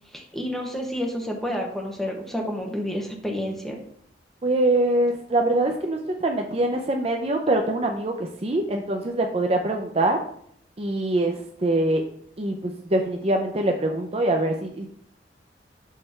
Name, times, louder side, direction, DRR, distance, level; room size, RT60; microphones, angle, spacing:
voice 1, 0.1-3.8, equal, ahead, 0 dB, 1.1 m, -29 dB
voice 2, 4.4-10.2 10.8-12.0 12.4-14.9, right 1 dB, 35° right, 3 dB, 0.5 m, -24 dB
6.5 x 3.3 x 5.6 m, 0.64 s
head